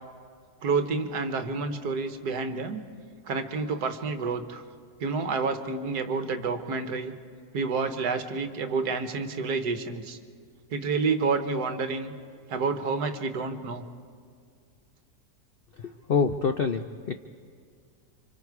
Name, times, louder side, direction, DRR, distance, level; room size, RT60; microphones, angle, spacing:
voice 1, 0.6-2.8 3.3-4.6 5.0-7.1 7.5-10.2 10.7-12.1 12.5-13.8, right 4 dB, 65° right, 8 dB, 1.6 m, -29 dB
voice 2, 15.8-17.1, left 5 dB, 85° left, 7 dB, 0.5 m, -26 dB
29.5 x 25.5 x 4.7 m, 2.1 s
omnidirectional pair, 1.8 m